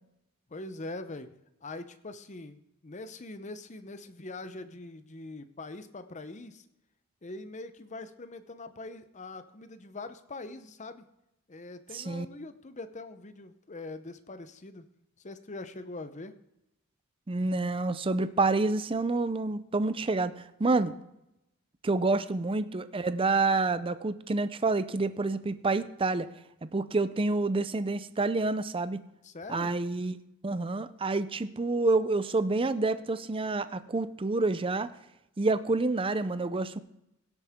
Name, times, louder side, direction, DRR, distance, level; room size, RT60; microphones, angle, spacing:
voice 1, 0.5-1.3 1.6-6.6 7.2-11.1 11.5-14.9 15.2-16.3 22.1-22.2 29.2-29.7, left 2 dB, 30° left, 11 dB, 0.7 m, -43 dB
voice 2, 11.9-12.3 17.3-20.9 21.8-26.3 26.7-29.0 29.5-30.2 30.4-34.9 35.4-36.8, right 3 dB, 25° right, 13 dB, 0.5 m, -28 dB
17.0 x 8.1 x 3.6 m, 0.86 s
head